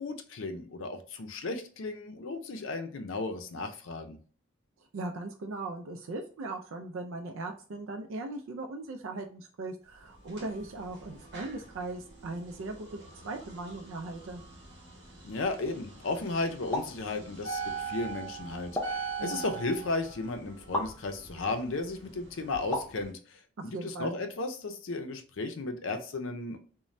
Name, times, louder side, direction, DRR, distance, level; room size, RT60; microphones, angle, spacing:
voice 1, 0.0-4.2 15.2-17.6 17.8-26.6, left 3 dB, 80° left, 6 dB, 0.5 m, -35 dB
voice 2, 4.9-14.4 19.2-19.4 23.6-24.1, right 2 dB, 90° right, 4 dB, 0.4 m, -39 dB
sound 1, 10.0-23.1, right 5 dB, 55° right, 0.9 m, -43 dB
sound 2, 16.7-17.0 18.8-19.1 20.7-21.0 22.7-23.0, left 1 dB, 10° left, 0.6 m, -33 dB
3.1 x 2.1 x 2.5 m, 0.42 s
head